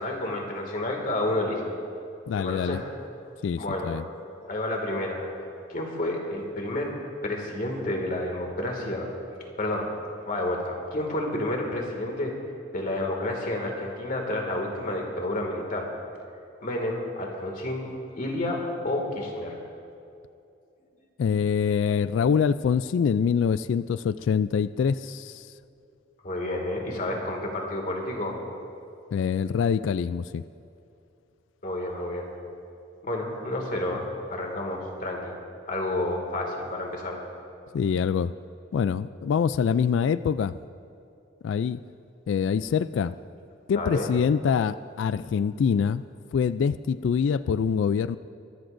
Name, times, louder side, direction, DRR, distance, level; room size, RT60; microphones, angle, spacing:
voice 1, 0.0-1.6 2.4-2.8 3.6-3.9 4.4-5.4 5.7-6.9 7.2-9.1 9.6-9.9 10.3-12.3 12.7-15.9 16.6-17.9 18.2-19.6 26.2-28.4 31.6-32.3 33.0-35.3 35.7-37.2 43.8-44.1, left 1 dB, 45° left, 1 dB, 2.2 m, -30 dB
voice 2, 2.3-2.8 3.4-4.0 21.2-25.5 29.1-30.4 37.7-38.3 38.7-40.5 41.4-41.8 42.3-43.1 43.7-46.0 46.3-48.2, left 6 dB, 70° left, 15 dB, 0.3 m, -25 dB
24.0 x 14.0 x 2.6 m, 2.6 s
head